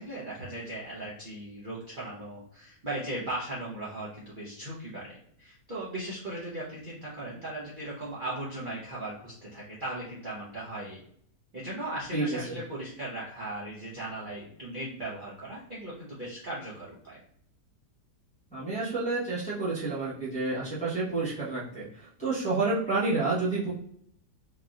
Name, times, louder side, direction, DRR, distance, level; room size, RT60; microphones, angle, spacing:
voice 1, 0.0-11.0 11.5-17.2, right 1 dB, 40° right, -8 dB, 0.8 m, -38 dB
voice 2, 12.1-12.6 18.5-23.7, right 3 dB, 5° left, -9 dB, 0.9 m, -29 dB
3.9 x 2.8 x 2.4 m, 0.65 s
omnidirectional pair, 1.9 m